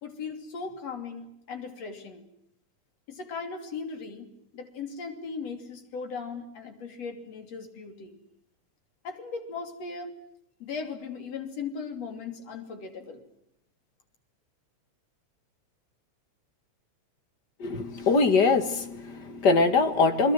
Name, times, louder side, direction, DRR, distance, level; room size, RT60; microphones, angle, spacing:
voice 1, 0.0-2.2 3.1-4.3 4.5-8.2 9.0-10.1 10.6-13.2, left 5 dB, 60° left, 6 dB, 4.0 m, -38 dB
voice 2, 17.6-20.3, left 4 dB, 40° left, 9 dB, 1.9 m, -23 dB
28.5 x 21.0 x 7.8 m, 0.76 s
omnidirectional pair, 3.4 m